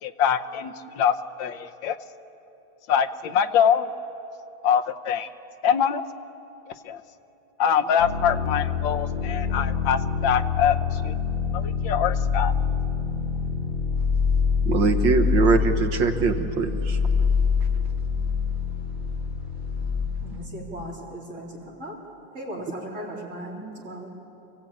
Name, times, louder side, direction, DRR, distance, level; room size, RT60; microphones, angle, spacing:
voice 1, 0.0-2.0 2.9-3.9 4.6-5.3 5.6-6.0 6.8-7.0 7.6-11.1 11.5-12.5, left 8 dB, 80° left, 8 dB, 1.6 m, -24 dB
sound 1, 8.0-20.1, left 6 dB, 30° left, 2.5 m, -25 dB
voice 2, 14.7-17.0, right 5 dB, 75° right, 6 dB, 1.9 m, -22 dB
voice 3, 20.2-21.9 22.3-24.1, equal, 40° right, -3 dB, 4.1 m, -37 dB
26.0 x 16.0 x 8.8 m, 3.0 s
omnidirectional pair, 2.1 m